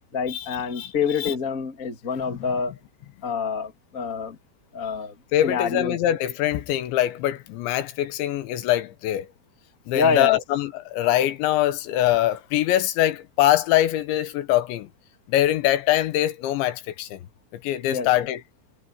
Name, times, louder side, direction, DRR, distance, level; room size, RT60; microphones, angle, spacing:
voice 1, 0.1-2.7 3.2-4.4 4.7-5.1 5.4-6.0 9.9-10.4 17.9-18.3, left 6 dB, 30° left, 1.5 m, -26 dB
voice 2, 5.3-9.3 9.9-14.9 15.3-17.2 17.6-18.4, left 13 dB, 75° left, 3.4 m, -23 dB
omnidirectional pair, 5.5 m